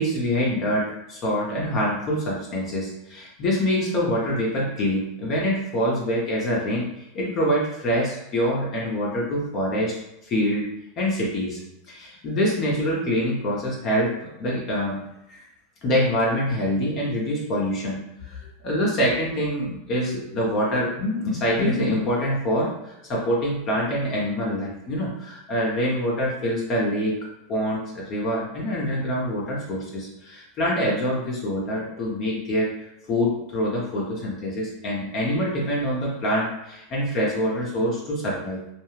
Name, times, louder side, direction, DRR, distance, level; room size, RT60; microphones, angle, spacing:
voice 1, 0.0-6.9 7.1-9.9 10.2-10.7 11.0-11.6 11.9-15.0 15.3-15.4 15.8-27.2 27.5-32.7 33.1-38.6, equal, 45° left, -4 dB, 0.8 m, -25 dB
2.5 x 2.3 x 3.1 m, 0.84 s
hypercardioid pair, 100°, 0 cm